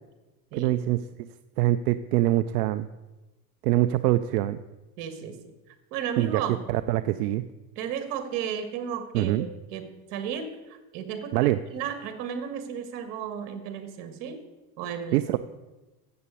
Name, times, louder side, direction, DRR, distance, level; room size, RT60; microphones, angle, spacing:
voice 1, 0.5-1.3 1.6-2.9 3.6-4.6 6.2-6.4 6.7-7.4 9.1-9.5 11.3-11.6 15.1-15.4, right 15 dB, 85° right, 11 dB, 0.5 m, -24 dB
voice 2, 5.0-5.4 5.9-6.6 7.7-10.5 10.9-14.4 14.8-15.4, right 8 dB, 60° right, 8 dB, 1.8 m, -34 dB
7.8 x 6.8 x 8.4 m, 1.1 s
supercardioid pair, 120°, 45 cm